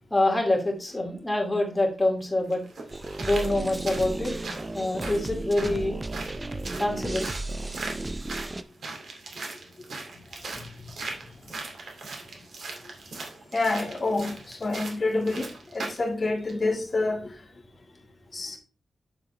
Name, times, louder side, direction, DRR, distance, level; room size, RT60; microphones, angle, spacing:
voice 1, 0.1-2.6 3.2-4.3 4.7-6.0 6.8-7.3 7.6-7.7, left 1 dB, 10° left, 2.6 m, -25 dB
sound 1, 1.7-1.8 2.5-16.1 16.5-16.6, right 3 dB, 60° right, 2.5 m, -39 dB
sound 2, 2.9-8.6, right 2 dB, 15° right, 0.5 m, -34 dB
voice 2, 13.5-15.5 15.7-17.3 18.3-18.6, left 2 dB, 30° left, 1.8 m, -27 dB
8.9 x 7.1 x 3.3 m
wide cardioid pair, 175°, 0 cm